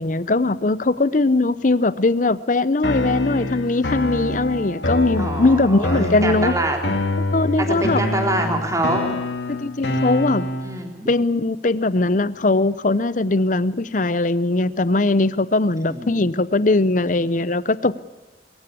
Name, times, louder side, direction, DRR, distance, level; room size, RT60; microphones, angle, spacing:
voice 1, 0.0-6.5 7.3-8.0 9.5-10.5 11.1-18.0, left 2 dB, 45° left, 17 dB, 0.8 m, -20 dB
sound 1, 2.8-10.8, left 1 dB, 80° left, 2.4 m, -26 dB
voice 2, 5.2-6.9 7.6-9.2 10.6-11.1 15.9-16.3, right 1 dB, 20° right, 3 dB, 3.7 m, -25 dB
23.0 x 15.5 x 8.5 m, 1.2 s
head